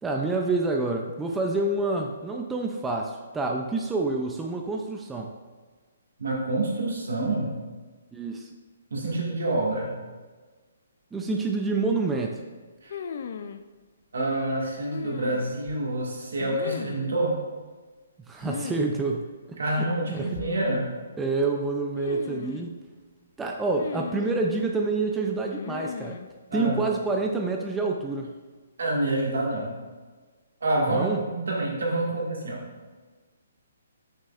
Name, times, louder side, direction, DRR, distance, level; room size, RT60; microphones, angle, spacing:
voice 1, 0.0-5.3 8.1-8.5 11.1-12.4 18.3-19.3 19.8-20.3 21.2-22.7 23.4-26.2 26.5-28.3 30.9-31.2, right 3 dB, 10° right, 1 dB, 0.4 m, -27 dB
voice 2, 6.2-7.5 8.9-9.9 12.8-12.9 14.1-17.4 19.6-20.9 26.5-26.8 28.8-29.8 30.6-32.6, right 2 dB, 80° right, -2 dB, 1.8 m, -27 dB
sound 1, 12.9-13.6 14.9-15.7 16.4-17.1 18.4-18.9 19.1-19.2 20.1-20.8 22.0-22.7 23.7-24.5 25.5-26.3, left 6 dB, 55° left, 0.4 m, -36 dB
6.5 x 6.2 x 2.4 m, 1.4 s
hypercardioid pair, 150°, 0 cm